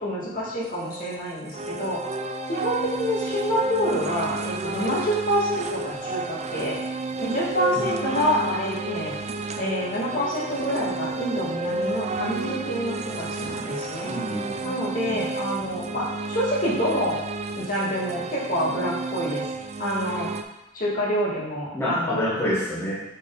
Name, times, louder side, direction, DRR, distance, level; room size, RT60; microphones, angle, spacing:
voice 1, 0.0-2.0 2.5-6.8 7.2-9.1 9.6-14.1 14.6-17.2 17.6-19.4 19.8-20.3 20.7-22.3, equal, 45° left, -5 dB, 1.8 m, -27 dB
sound 1, 0.6-20.4, right 3 dB, 30° right, 0.4 m, -31 dB
voice 2, 14.1-14.7 15.1-15.3 21.7-23.0, equal, 15° left, -8 dB, 1.3 m, -28 dB
6.3 x 4.4 x 4.0 m, 0.91 s
head